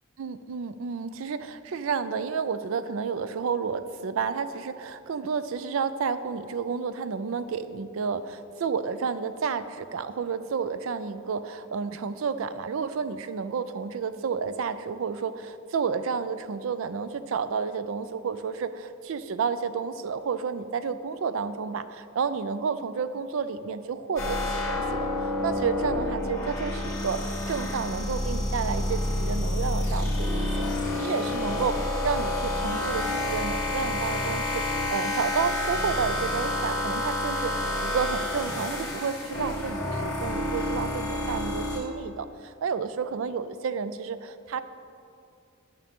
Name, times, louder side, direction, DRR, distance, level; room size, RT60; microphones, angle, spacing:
voice 1, 0.2-30.5 31.0-44.6, right 5 dB, 70° right, 13 dB, 0.4 m, -31 dB
sound 1, 24.2-41.8, left 1 dB, 15° left, 2.0 m, -29 dB
11.5 x 6.1 x 3.5 m, 2.5 s
head